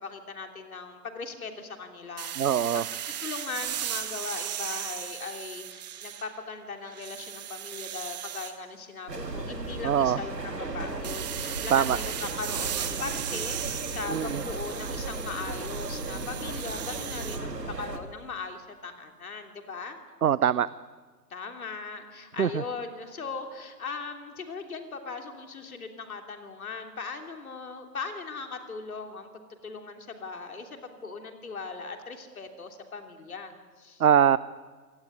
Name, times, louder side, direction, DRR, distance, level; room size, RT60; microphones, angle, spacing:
voice 1, 0.0-20.0 21.3-34.0, left 4 dB, 60° left, 5 dB, 3.3 m, -39 dB
sound 1, 2.2-6.5 6.9-8.5 11.0-17.4, right 11 dB, 25° right, 1.5 m, -36 dB
voice 2, 2.4-2.8 9.8-10.2 11.7-12.0 14.1-14.4 20.2-20.7 22.4-22.5 34.0-34.4, right 9 dB, 65° right, 19 dB, 0.7 m, -22 dB
sound 2, 9.1-18.0, right 3 dB, 80° right, 2.9 m, -35 dB
27.0 x 17.5 x 9.6 m, 1.4 s
figure-of-eight pair, 140°, 48 cm